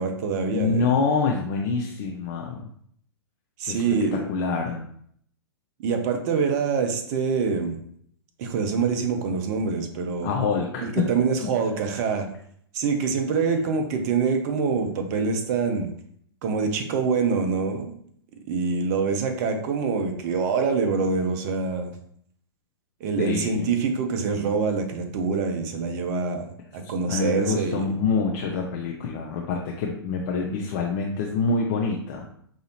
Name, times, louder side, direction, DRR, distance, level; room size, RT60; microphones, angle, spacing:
voice 1, 0.0-1.0 3.6-4.2 5.8-7.8 8.4-10.3 10.8-12.3 12.7-15.9 16.4-17.9 18.5-21.9 23.0-26.5 26.7-27.9, right 5 dB, 40° right, 5 dB, 0.8 m, -25 dB
voice 2, 0.5-2.6 3.6-3.8 4.1-4.8 10.2-11.0 23.2-23.7 27.1-32.3, left 4 dB, 45° left, 0 dB, 0.6 m, -26 dB
4.9 x 2.6 x 2.9 m, 0.65 s
figure-of-eight pair, 110°, 13 cm